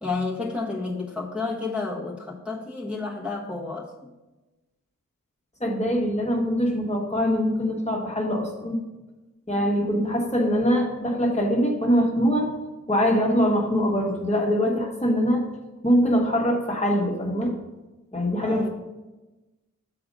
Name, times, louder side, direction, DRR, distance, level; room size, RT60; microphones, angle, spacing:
voice 1, 0.0-4.1 18.4-18.7, left 3 dB, 5° right, -6 dB, 1.3 m, -31 dB
voice 2, 5.6-8.8 9.5-12.5 12.9-15.5 15.8-17.5 18.1-18.7, equal, 20° left, -1 dB, 1.4 m, -23 dB
6.8 x 5.1 x 5.3 m, 1.1 s
cardioid pair, 65°, 31 cm